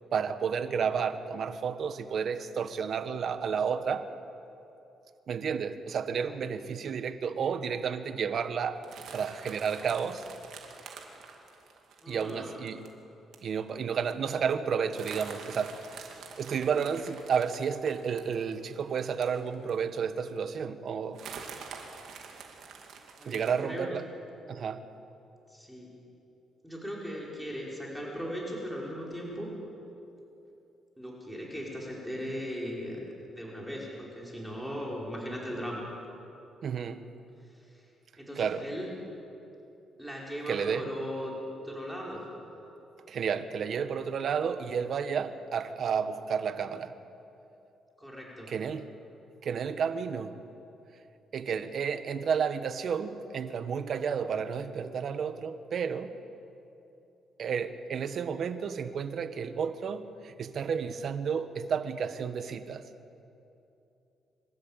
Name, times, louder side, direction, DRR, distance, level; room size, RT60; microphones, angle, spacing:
voice 1, 0.1-4.1 5.3-8.8 9.1-10.2 12.1-12.8 13.4-15.8 16.4-21.2 23.2-24.0 24.5-24.8 36.6-37.0 38.3-38.7 40.5-40.9 43.1-46.9 48.5-48.9 49.4-50.3 51.3-56.1 57.4-62.9, right 6 dB, 60° right, 11 dB, 1.2 m, -31 dB
sound 1, 8.8-12.9 13.3-13.5 13.8-13.9 14.1-14.3 14.9-19.9 20.4-20.5 21.1-23.6, right 6 dB, 75° right, 2.8 m, -46 dB
voice 2, 12.0-12.6 23.2-23.9 25.5-25.9 26.6-29.5 31.0-35.8 37.7-37.8 38.2-38.9 40.0-41.3 41.6-42.2 48.0-48.5, equal, ahead, -3 dB, 4.9 m, -38 dB
25.5 x 13.0 x 8.9 m, 2.9 s
cardioid pair, 90°, 0 cm